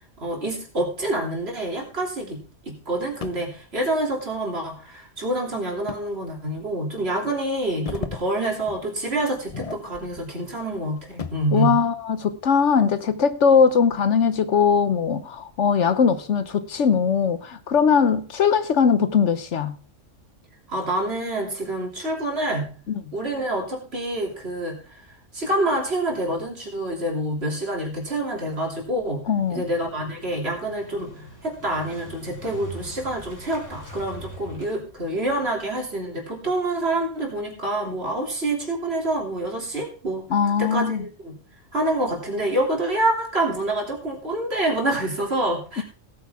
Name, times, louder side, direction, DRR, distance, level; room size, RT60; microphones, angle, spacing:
voice 1, 0.2-11.8 20.7-22.7 23.1-41.4 41.7-45.8, right 1 dB, 50° right, 3.3 m, -27 dB
sound 1, 3.2-3.5 5.9-6.1 6.6-6.7 7.6-8.3 8.6-8.9 9.4-10.3 10.6-11.5 13.1-14.2 14.7-14.8 15.5-15.9, left 5 dB, 35° left, 0.7 m, -36 dB
voice 2, 11.5-19.7 29.3-29.7 40.3-41.0 45.8-45.9, left 6 dB, 65° left, 1.1 m, -20 dB
Motorcycle, 29.2-36.0, equal, 15° left, 3.3 m, -43 dB
17.5 x 8.9 x 3.5 m
omnidirectional pair, 1.4 m